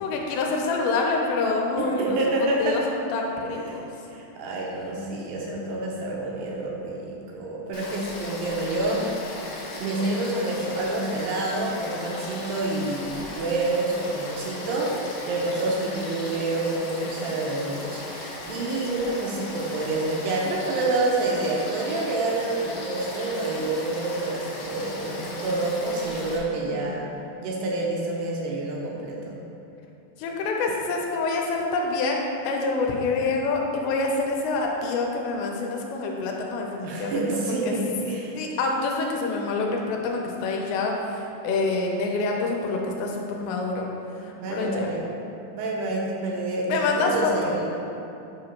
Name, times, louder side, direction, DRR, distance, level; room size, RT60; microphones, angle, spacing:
voice 1, 0.0-3.9 26.6-27.0 30.2-37.2 37.6-37.7 38.4-43.9 44.2-44.9 46.7-47.6, left 3 dB, 85° left, 0 dB, 2.9 m, -27 dB
voice 2, 1.8-2.8 3.4-3.8 4.1-9.1 9.8-27.1 27.4-29.4 36.8-38.4 44.3-45.0 45.5-47.7, right 2 dB, 85° right, -3 dB, 2.6 m, -28 dB
Frog / Stream, 7.7-26.4, left 1 dB, 65° left, 2.5 m, -37 dB
8.6 x 2.9 x 5.5 m, 3.0 s
omnidirectional pair, 5.1 m